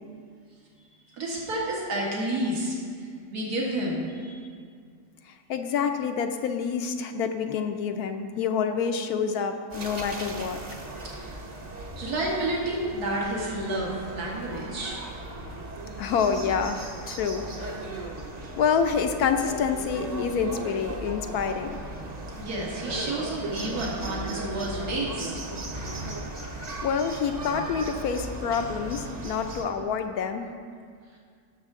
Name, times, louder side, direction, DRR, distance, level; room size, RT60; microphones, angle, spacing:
voice 1, 1.1-4.5 11.0-11.4 12.0-15.0 22.4-25.4, right 1 dB, 75° right, -4 dB, 2.3 m, -30 dB
voice 2, 5.5-10.6 16.0-18.1 18.6-21.8 26.8-30.5, left 6 dB, 75° left, 6 dB, 1.1 m, -27 dB
sound 1, 9.7-29.6, right 2 dB, 30° right, 0.9 m, -37 dB
18.0 x 6.7 x 3.6 m, 2.1 s
omnidirectional pair, 1.7 m